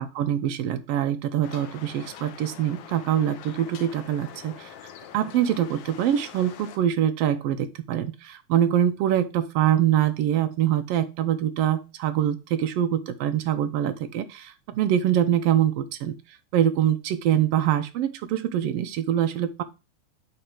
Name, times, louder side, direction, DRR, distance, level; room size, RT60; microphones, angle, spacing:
voice 1, 0.0-4.7 5.1-16.1 16.5-19.6, right 10 dB, 75° right, 9 dB, 1.4 m, -24 dB
sound 1, 1.4-6.8, left 9 dB, 75° left, 1.4 m, -44 dB
8.8 x 3.2 x 4.8 m, 0.28 s
omnidirectional pair, 3.5 m